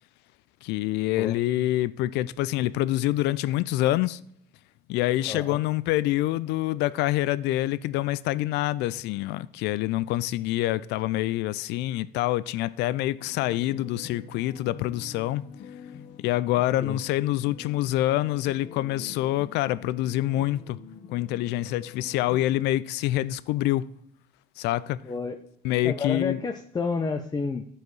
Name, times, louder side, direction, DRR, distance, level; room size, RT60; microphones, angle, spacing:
voice 1, 0.6-4.2 4.9-15.4 16.2-20.8 21.1-23.9 24.6-25.0 25.6-26.4, left 15 dB, 85° left, 0.4 m, -26 dB
voice 2, 5.3-5.6 16.8-17.0 25.0-25.4 25.8-27.6, left 4 dB, 25° left, 0.7 m, -30 dB
sound 1, 13.2-22.5, left 8 dB, 65° left, 1.1 m, -46 dB
12.0 x 4.8 x 4.7 m
cardioid pair, 110°, 17 cm